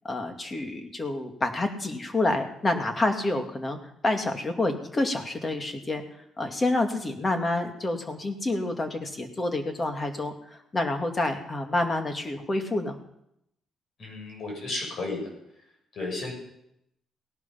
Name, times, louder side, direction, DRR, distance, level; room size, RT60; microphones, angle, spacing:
voice 1, 0.0-3.8 4.0-6.0 6.4-13.0, left 2 dB, 30° left, 5 dB, 2.2 m, -28 dB
voice 2, 14.0-15.2 15.9-16.3, left 2 dB, 60° left, -1 dB, 7.5 m, -33 dB
17.5 x 11.0 x 5.8 m, 0.79 s
cardioid pair, 90°, 0 cm